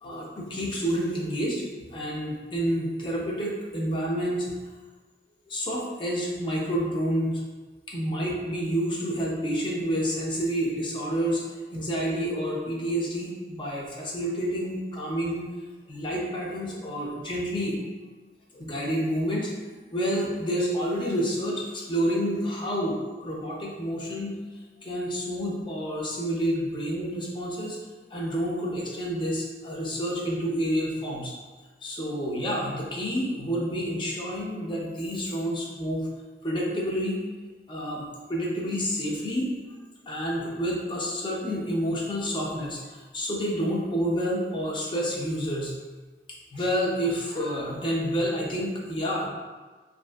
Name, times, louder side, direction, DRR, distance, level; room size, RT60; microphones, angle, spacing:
voice 1, 0.0-1.6 1.9-4.5 5.5-7.4 7.9-11.4 11.7-15.5 15.9-17.8 18.5-19.6 19.9-24.4 24.8-27.8 28.1-31.3 31.8-36.1 36.4-37.2 37.7-39.5 40.1-45.7 46.5-49.3, equal, 30° left, -3 dB, 0.4 m, -29 dB
2.5 x 2.5 x 2.3 m, 1.3 s
head